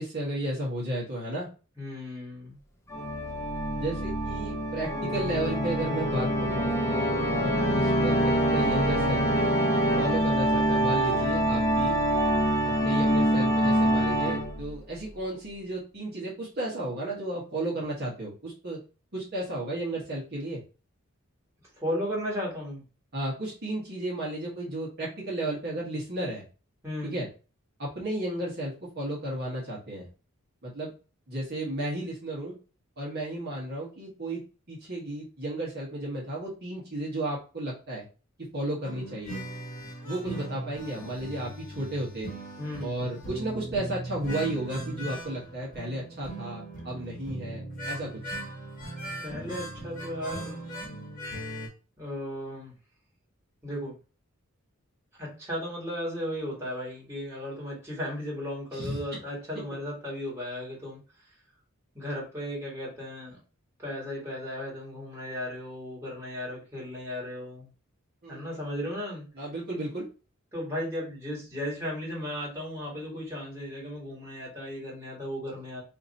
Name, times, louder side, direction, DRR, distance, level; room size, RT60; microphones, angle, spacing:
voice 1, 0.0-1.5 3.8-9.5 10.0-12.0 12.6-18.8 19.1-20.6 23.1-26.4 27.0-27.3 27.8-30.0 30.6-30.9 31.3-32.6 33.0-34.4 34.7-38.0 38.5-39.4 40.0-42.3 42.8-48.2 58.7-59.0 68.2-68.6 69.4-70.1, right 1 dB, 50° right, -5 dB, 1.2 m, -33 dB
voice 2, 1.8-2.6 21.8-22.8 26.8-27.2 42.6-42.9 49.2-50.6 52.0-52.7 53.6-54.0 55.2-61.0 61.9-63.4 63.8-67.7 68.3-69.3 70.5-75.8, left 1 dB, 15° right, -5 dB, 1.7 m, -35 dB
Organ, 2.9-14.7, right 1 dB, 15° left, 0.6 m, -25 dB
sound 1, 38.8-51.7, right 1 dB, 40° left, 1.2 m, -39 dB
2.9 x 2.6 x 4.0 m, 0.34 s
head